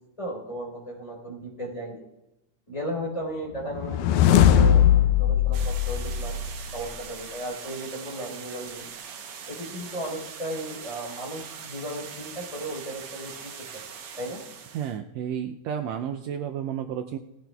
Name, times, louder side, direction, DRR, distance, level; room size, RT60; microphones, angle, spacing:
voice 1, 0.2-2.0 2.7-6.4 6.7-8.9 9.5-13.8 14.2-14.4, right 1 dB, 10° left, -2 dB, 3.7 m, -35 dB
sound 1, 3.7-7.0, left 10 dB, 90° left, 2.2 m, -20 dB
sound 2, 5.5-15.0, right 7 dB, 65° right, 1.4 m, -42 dB
voice 2, 14.7-17.2, right 9 dB, 85° right, 5 dB, 1.5 m, -31 dB
19.0 x 16.5 x 2.3 m, 0.94 s
omnidirectional pair, 3.6 m